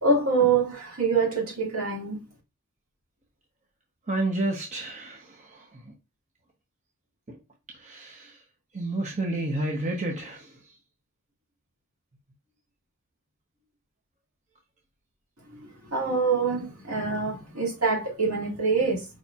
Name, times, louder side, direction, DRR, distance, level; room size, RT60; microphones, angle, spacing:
voice 1, 0.0-2.2 15.9-19.1, right 4 dB, 70° right, 2.1 m, -25 dB
voice 2, 4.1-5.6 7.3-7.4 7.8-8.3 8.7-10.5, right 2 dB, 35° right, 0.8 m, -30 dB
4.9 x 4.1 x 2.3 m
head